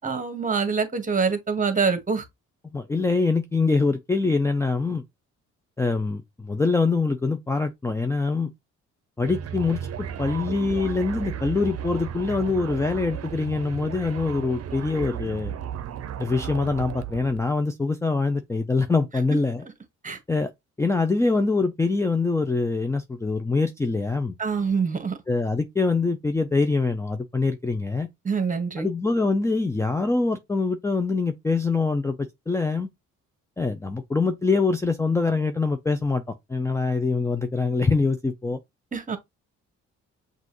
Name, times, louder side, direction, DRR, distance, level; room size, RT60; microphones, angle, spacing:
voice 1, 0.0-2.2 19.3-19.4 20.0-20.2 24.4-25.2 28.2-28.9 38.9-39.2, right 5 dB, 25° right, 1.3 m, -25 dB
voice 2, 2.7-5.0 5.8-8.5 9.2-15.5 16.2-19.6 20.3-20.5 20.8-24.3 25.3-28.1 28.8-32.9 33.6-36.2 36.5-38.6, left 3 dB, 10° left, 0.5 m, -24 dB
sound 1, 9.2-17.5, right 9 dB, 55° right, 0.7 m, -34 dB
6.1 x 2.5 x 3.0 m
cardioid pair, 90°, 30 cm